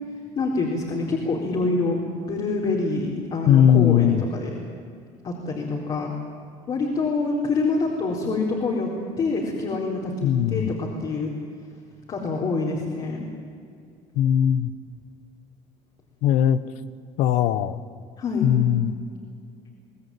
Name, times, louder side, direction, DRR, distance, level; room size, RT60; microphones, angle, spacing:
voice 1, 0.4-2.0 2.3-4.6 5.2-6.1 6.7-8.9 9.2-11.3 12.1-13.2 18.2-18.5, left 3 dB, 45° left, -2 dB, 4.2 m, -26 dB
voice 2, 3.4-4.3 10.2-10.7 14.2-14.7 16.2-16.6 17.2-17.8 18.4-18.9, left 10 dB, 75° left, 15 dB, 1.1 m, -19 dB
24.0 x 17.5 x 9.1 m, 2.2 s
cardioid pair, 115°, 12 cm